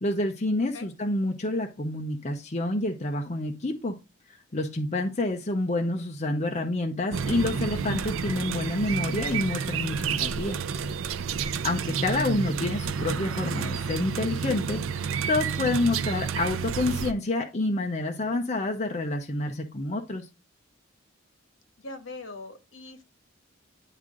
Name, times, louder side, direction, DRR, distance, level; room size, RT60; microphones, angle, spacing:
voice 1, 0.0-4.0 4.5-10.6 11.4-20.3, left 2 dB, 35° left, 0.7 m, -28 dB
after rain bird traffic, 7.1-17.1, right 6 dB, 80° right, 0.5 m, -30 dB
voice 2, 21.8-23.0, left 2 dB, 70° left, 1.4 m, -41 dB
10.0 x 3.7 x 3.7 m
head